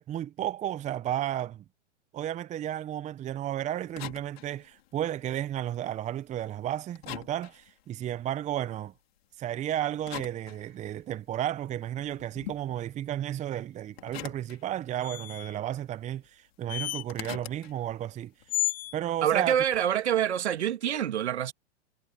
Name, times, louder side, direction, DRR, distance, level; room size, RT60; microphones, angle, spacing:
voice 1, 0.0-1.6 2.1-8.9 9.4-18.3 18.9-19.6, right 11 dB, 20° right, 1.1 m, -33 dB
sound 1, 3.7-6.6 7.0-9.0 9.6-11.2 11.6-15.2 15.4-16.3 16.5-19.9, left 15 dB, 55° left, 4.8 m, -45 dB
sound 2, 15.0-15.6 16.7-17.0 18.5-19.0, left 13 dB, 25° left, 1.1 m, -31 dB
voice 2, 19.2-21.5, right 10 dB, 65° right, 2.6 m, -26 dB
hypercardioid pair, 110°, 36 cm